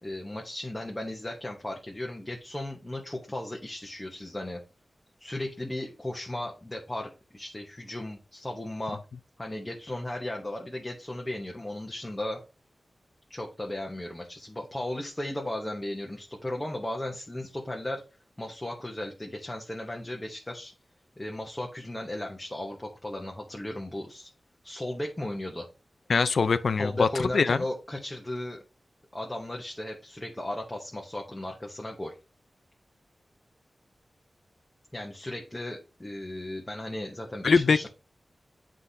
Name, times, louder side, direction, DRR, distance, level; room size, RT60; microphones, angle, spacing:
voice 1, 0.0-4.6 5.2-9.0 9.4-12.4 13.3-18.0 18.4-20.7 21.2-24.3 24.6-25.7 26.8-28.6 29.1-32.2 34.9-37.9, left 1 dB, 15° left, 0.9 m, -36 dB
voice 2, 26.1-27.1 27.3-27.6 37.4-37.8, left 5 dB, 80° left, 0.4 m, -22 dB
9.7 x 3.8 x 2.7 m
wide cardioid pair, 100°, 0 cm